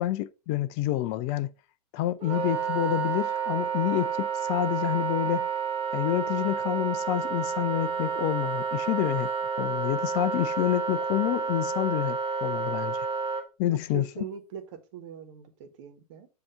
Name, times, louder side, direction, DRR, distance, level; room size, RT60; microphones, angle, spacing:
voice 1, 0.0-1.5 1.9-5.5 5.9-9.3 9.6-13.1 13.6-14.2, left 14 dB, 35° left, 0.4 m, -28 dB
Wind instrument woodwind instrument, 2.2-13.4, right 6 dB, 30° right, 1.3 m, -30 dB
voice 2, 13.6-14.6 14.9-16.3, right 8 dB, 50° right, 1.3 m, -41 dB
7.6 x 2.8 x 5.4 m
figure-of-eight pair, 100°, 20 cm